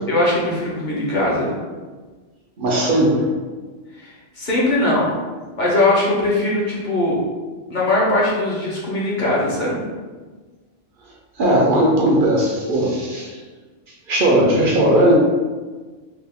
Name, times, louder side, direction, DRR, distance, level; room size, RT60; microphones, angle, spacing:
voice 1, 0.1-1.5 3.9-5.1 5.6-7.2 7.7-9.9, left 1 dB, 45° left, -6 dB, 0.7 m, -20 dB
voice 2, 2.6-3.3 11.4-13.4 14.1-15.2, right 1 dB, 60° right, -3 dB, 0.6 m, -17 dB
2.8 x 2.3 x 3.5 m, 1.4 s
omnidirectional pair, 1.4 m